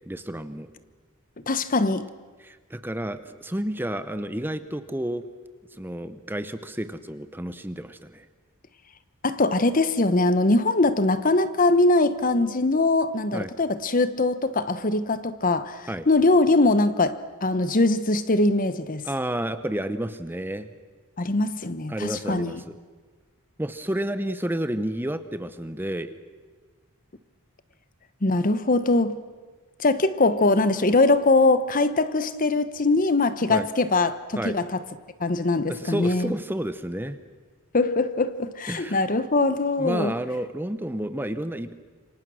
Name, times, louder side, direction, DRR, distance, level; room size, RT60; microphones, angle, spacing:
voice 1, 0.1-0.7 2.4-5.2 5.7-8.3 13.3-13.5 15.9-16.1 19.0-20.7 21.9-22.8 23.6-26.2 33.5-33.7 34.4-34.6 35.7-37.2 38.7-39.0 39.8-41.7, right 1 dB, 10° right, 0.8 m, -30 dB
voice 2, 1.5-2.1 9.2-19.1 21.2-22.6 28.2-29.2 29.8-34.7 35.2-36.3 37.7-40.1, left 2 dB, 40° left, 1.0 m, -22 dB
28.0 x 24.5 x 6.3 m
head